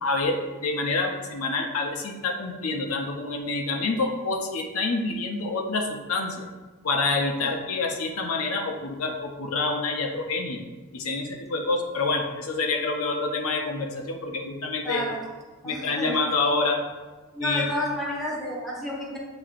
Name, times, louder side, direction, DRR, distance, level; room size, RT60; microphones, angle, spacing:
voice 1, 0.0-6.5 6.8-10.6 10.9-15.0 15.6-16.8 17.4-17.6, left 3 dB, 80° left, 2 dB, 0.6 m, -27 dB
voice 2, 14.8-15.3 15.6-16.3 17.3-19.2, left 1 dB, ahead, -4 dB, 0.7 m, -31 dB
7.5 x 2.8 x 2.5 m, 1.2 s
head